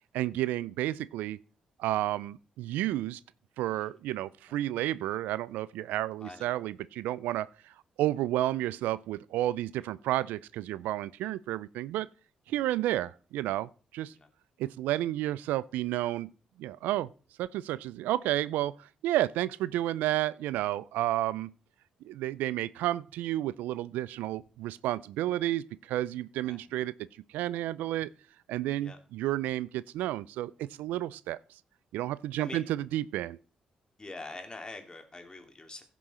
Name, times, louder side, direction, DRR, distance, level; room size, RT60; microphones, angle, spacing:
voice 1, 0.1-1.4 1.8-3.2 3.6-7.7 8.0-12.1 12.5-14.1 14.6-16.3 16.6-17.1 17.4-21.5 22.0-26.9 27.3-28.1 28.5-31.4 31.9-33.4, right 14 dB, 80° right, 0.4 m, -31 dB
voice 2, 34.0-35.8, left 2 dB, 30° left, 2.7 m, -44 dB
15.5 x 6.1 x 4.2 m
hypercardioid pair, 50°, 3 cm